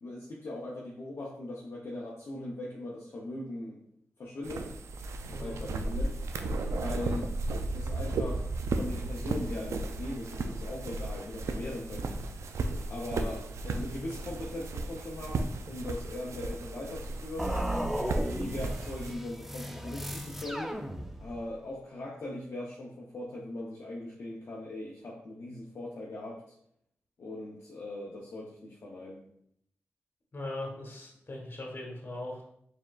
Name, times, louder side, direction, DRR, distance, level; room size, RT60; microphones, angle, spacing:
voice 1, 0.0-3.8 4.2-4.7 5.4-6.2 6.7-7.3 7.7-12.1 12.9-18.0 18.3-20.7 21.2-26.4 27.2-29.2, left 1 dB, 65° left, -4 dB, 0.7 m, -40 dB
sound 1, 4.4-19.1, right 2 dB, 75° right, 0.3 m, -35 dB
voice 2, 5.3-5.6 30.3-32.4, left 1 dB, 45° left, 0 dB, 1.3 m, -40 dB
sound 2, 17.4-21.5, equal, 5° right, 0.5 m, -35 dB
4.3 x 3.6 x 2.4 m, 0.71 s
cardioid pair, 45°, 5 cm